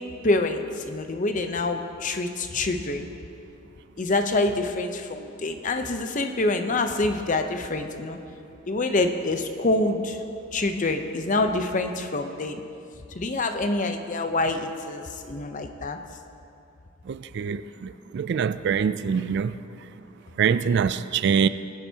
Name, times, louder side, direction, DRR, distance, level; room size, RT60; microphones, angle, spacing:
voice 1, 0.2-3.1 4.0-8.2 8.7-10.2 10.5-12.6 13.1-16.0, left 2 dB, 40° left, 0.7 m, -26 dB
voice 2, 17.1-17.6 18.1-19.5 20.4-21.5, right 7 dB, 55° right, 0.3 m, -23 dB
20.0 x 10.0 x 2.8 m
head